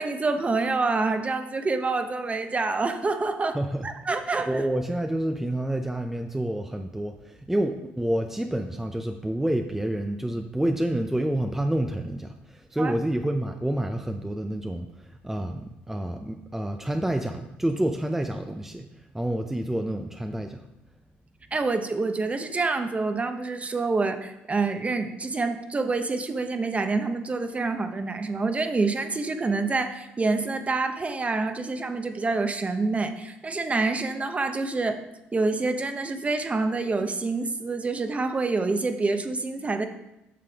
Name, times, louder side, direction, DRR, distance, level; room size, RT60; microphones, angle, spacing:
voice 1, 0.0-3.6 3.8-4.6 12.8-12.9 21.5-35.0 35.3-39.9, right 3 dB, 30° right, 7 dB, 0.9 m, -27 dB
voice 2, 3.5-3.9 4.5-18.9 19.1-20.6, right 1 dB, 5° right, 5 dB, 0.6 m, -28 dB
8.5 x 6.7 x 3.5 m, 0.89 s
supercardioid pair, 65°, 5 cm